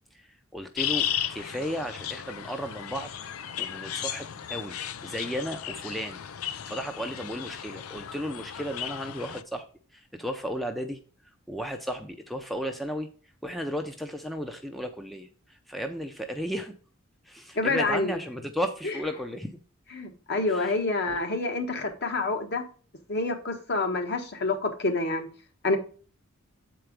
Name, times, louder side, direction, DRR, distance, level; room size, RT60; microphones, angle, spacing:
voice 1, 0.1-3.1 3.6-6.2 6.7-9.7 9.9-11.0 11.5-13.1 13.4-16.7 17.2-19.6 20.5-20.8 21.1-21.2, equal, ahead, 0.5 m, -34 dB
sound 1, 0.8-9.4, left 10 dB, 90° left, 0.5 m, -35 dB
voice 2, 17.5-18.1 19.9-22.6 23.1-25.3 25.6-25.8, left 3 dB, 50° left, 1.3 m, -27 dB
7.8 x 4.6 x 5.1 m
head